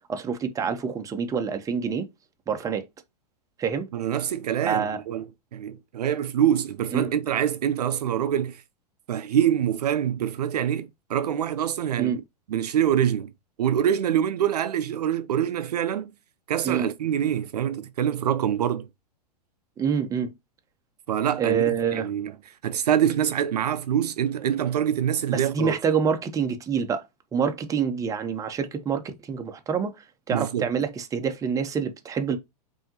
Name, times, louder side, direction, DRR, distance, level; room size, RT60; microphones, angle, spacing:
voice 1, 0.1-2.1 2.5-2.9 3.6-3.9 4.6-5.0 6.9-7.1 12.0-12.2 16.6-16.9 19.8-20.3 21.4-22.1 25.3-27.0 27.3-29.9 30.3-32.4, right 6 dB, 15° right, 0.7 m, -26 dB
voice 2, 3.9-5.2 5.5-8.6 9.1-12.2 12.5-13.3 13.6-16.1 16.5-18.9 21.1-22.4 22.6-25.8 30.3-30.7, right 10 dB, 70° right, 0.5 m, -25 dB
5.5 x 2.8 x 2.8 m
figure-of-eight pair, 105°, 21 cm